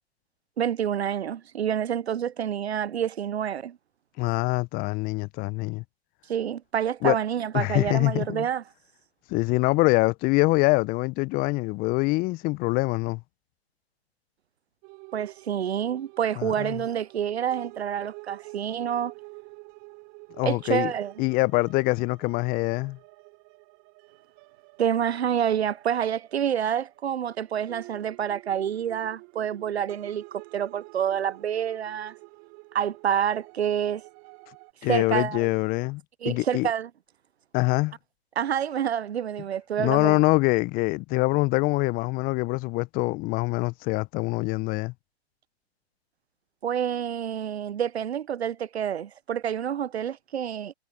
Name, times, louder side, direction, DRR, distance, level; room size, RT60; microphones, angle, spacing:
voice 1, 0.6-3.8 6.3-8.6 15.1-19.1 20.4-21.1 24.8-32.1 32.7-34.0 34.9-35.5 36.2-36.9 38.4-40.2 46.6-50.7, right 9 dB, 75° right, 0.8 m, -28 dB
voice 2, 4.2-5.8 7.0-7.2 7.5-8.5 9.3-13.2 16.4-16.8 20.4-20.9 21.2-23.0 34.8-36.0 36.3-36.7 37.5-38.0 39.8-44.9, left 23 dB, 25° left, 0.8 m, -24 dB
sound 1, 14.8-34.7, right 32 dB, 40° right, 5.6 m, -49 dB
hypercardioid pair, 115°, 32 cm